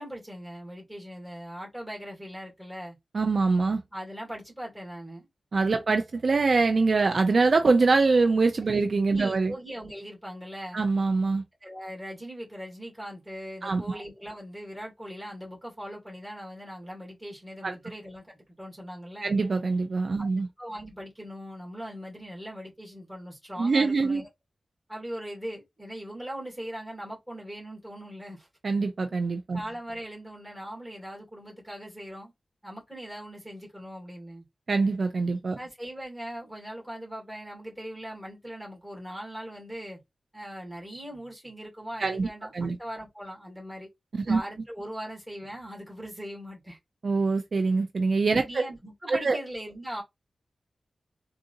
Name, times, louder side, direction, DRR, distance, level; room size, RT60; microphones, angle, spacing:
voice 1, 0.0-3.0 3.9-5.3 9.1-10.8 11.6-19.3 20.2-20.3 20.6-24.3 24.9-28.5 29.5-32.3 32.6-34.4 35.6-40.0 40.3-43.9 44.3-46.8 48.3-50.0, equal, 5° right, 2.1 m, -40 dB
voice 2, 3.1-3.8 5.5-9.5 10.7-11.4 13.6-14.0 17.6-17.7 19.2-20.5 23.6-24.2 28.6-29.6 34.7-35.6 42.0-42.3 42.5-42.8 44.1-44.4 47.0-48.6 49.1-49.4, right 4 dB, 55° right, 0.4 m, -24 dB
3.7 x 2.5 x 2.6 m
wide cardioid pair, 115°, 0 cm